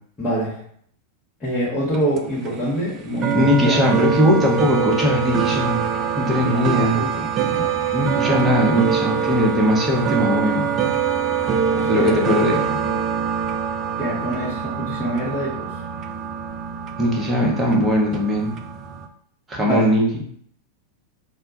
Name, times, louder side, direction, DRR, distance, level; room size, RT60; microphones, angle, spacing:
voice 1, 0.2-0.6 1.4-3.8 6.3-7.7 8.0-8.5 11.7-12.2 14.0-15.7 19.6-19.9, right 1 dB, 20° left, -8 dB, 0.8 m, -26 dB
sound 1, 1.8-19.1, right 7 dB, 30° right, 0.3 m, -24 dB
voice 2, 3.3-5.9 6.2-7.1 7.4-7.5 7.9-10.7 11.8-12.8 17.0-18.5 19.5-20.1, equal, 15° right, -3 dB, 0.8 m, -19 dB
2.2 x 2.1 x 3.8 m, 0.64 s
figure-of-eight pair, 90°, 0 cm